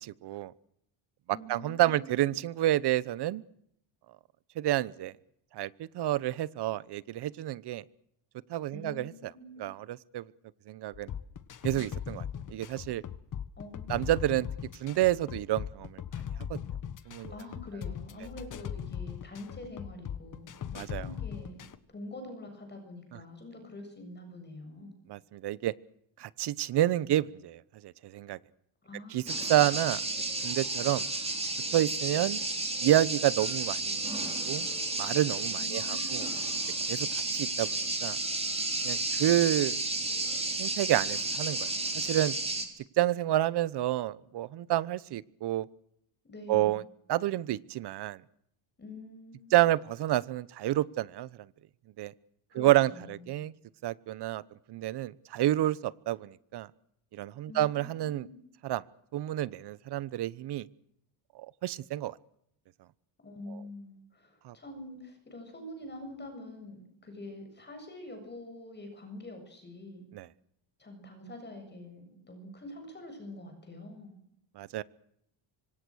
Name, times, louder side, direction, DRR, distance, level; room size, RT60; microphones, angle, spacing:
voice 1, 0.0-0.5 1.5-3.4 4.6-5.1 5.5-7.8 8.5-9.1 9.6-10.3 10.7-11.1 11.6-13.0 13.9-14.5 14.8-16.0 16.5-16.6 17.1-17.3 20.7-21.1 25.1-25.7 26.2-28.4 29.1-29.2 29.5-30.0 30.4-31.0 31.7-32.4 32.8-34.7 35.0-36.3 36.9-37.1 37.3-38.2 38.8-39.8 40.6-41.7 41.9-42.3 43.0-45.7 46.5-46.8 47.1-48.2 49.5-51.3 52.0-52.1 52.6-53.5 53.8-54.4 54.7-56.7 57.1-58.3 58.6-58.8 59.1-60.7 61.6-62.2 64.4-64.5 70.1-70.3 74.6-74.8, right 14 dB, 50° right, 1.0 m, -29 dB
voice 2, 1.3-2.4 8.7-9.6 13.6-14.4 17.3-20.5 20.9-21.7 21.9-24.9 28.8-29.8 35.5-36.4 46.2-46.8 48.8-49.6 52.5-53.3 57.4-58.4 63.2-70.1 70.8-74.2, left 1 dB, 20° left, 7.6 m, -46 dB
sound 1, 10.9-21.8, left 9 dB, 40° left, 1.6 m, -39 dB
sound 2, 29.3-42.7, right 2 dB, 10° right, 3.9 m, -32 dB
25.5 x 25.5 x 6.4 m
cardioid pair, 140°, 49 cm